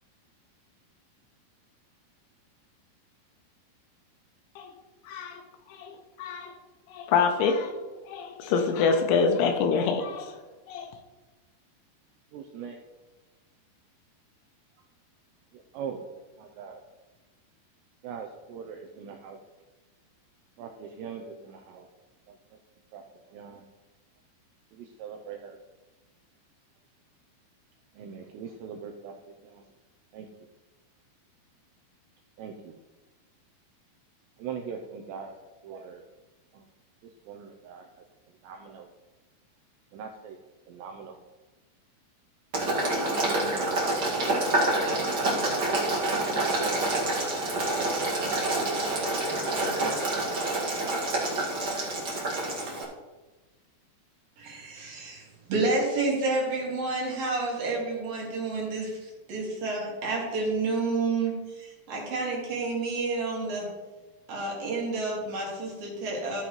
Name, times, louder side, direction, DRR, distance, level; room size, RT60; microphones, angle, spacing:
voice 1, 5.1-5.4 5.7-6.5 6.9-7.7 8.1-10.4 10.7-10.9, left 5 dB, 80° left, 5 dB, 2.9 m, -26 dB
voice 2, 12.3-12.8 15.7-16.0 16.6-16.8 18.0-19.4 20.6-21.8 22.9-23.0 23.3-23.6 25.0-25.5 28.0-29.1 30.1-30.3 32.4-32.5 34.4-35.3 35.7-36.0 37.3-37.8 38.4-38.8 39.9-40.4 40.7-41.1 43.2-44.2 45.5-45.6 46.4-46.6 46.9-47.1 47.7-48.3 49.6-50.4 50.7-50.8, right 7 dB, 90° right, 3 dB, 2.4 m, -40 dB
Boiling, 42.5-52.8, right 2 dB, 70° right, 1.0 m, -27 dB
voice 3, 54.4-55.2 55.5-63.7 64.3-66.4, right 3 dB, 55° right, -3 dB, 3.5 m, -30 dB
14.5 x 7.3 x 3.1 m, 1.2 s
omnidirectional pair, 5.7 m